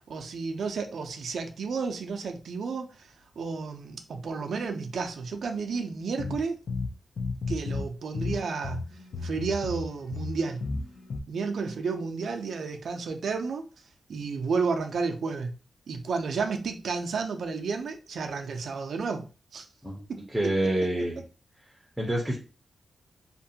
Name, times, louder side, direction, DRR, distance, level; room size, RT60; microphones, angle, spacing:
voice 1, 0.0-6.6 7.5-8.8 9.2-10.6 11.3-13.7 14.1-15.5 15.9-19.3 19.5-19.7 20.1-20.5, right 4 dB, 70° right, 0.4 m, -32 dB
sound 1, 6.2-7.9 8.1-11.2, left 3 dB, 60° left, 0.4 m, -33 dB
voice 2, 20.3-21.2 22.0-22.4, right 1 dB, 10° right, 0.5 m, -27 dB
2.5 x 2.2 x 2.7 m
wide cardioid pair, 145°, 0 cm